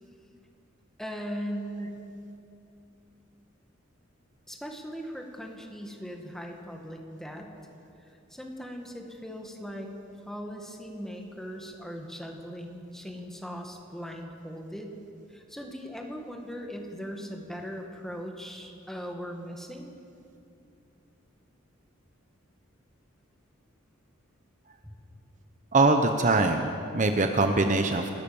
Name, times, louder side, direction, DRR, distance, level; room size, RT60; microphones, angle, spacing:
voice 1, 1.0-2.0 4.5-7.5 8.0-9.9 10.3-15.0 15.3-19.9, equal, ahead, 1 dB, 2.0 m, -39 dB
voice 2, 25.7-28.1, right 3 dB, 40° right, 5 dB, 0.9 m, -23 dB
29.0 x 12.5 x 7.1 m, 2.6 s
head